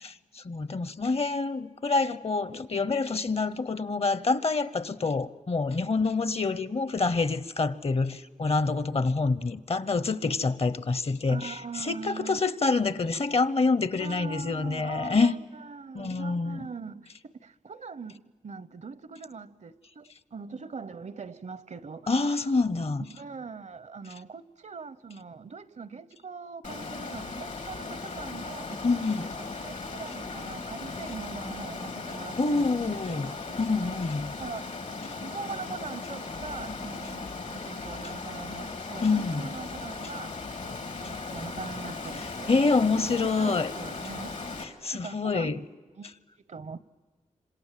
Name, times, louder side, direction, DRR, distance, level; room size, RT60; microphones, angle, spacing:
voice 1, 0.0-15.3 15.9-16.7 22.1-23.0 28.8-29.3 32.4-33.3 33.6-34.3 39.0-39.5 42.5-43.7 44.6-45.6, left 3 dB, 50° left, 0.8 m, -27 dB
voice 2, 11.3-12.4 14.0-22.4 23.0-33.4 33.8-34.0 34.4-34.7 35.2-40.3 40.6-42.5 43.1-44.4 44.9-45.6 45.9-46.1 46.5-46.9, right 5 dB, 70° right, 0.7 m, -42 dB
Water, 26.6-44.6, left 3 dB, 80° left, 2.2 m, -37 dB
27.0 x 26.5 x 7.5 m
wide cardioid pair, 70°, 13 cm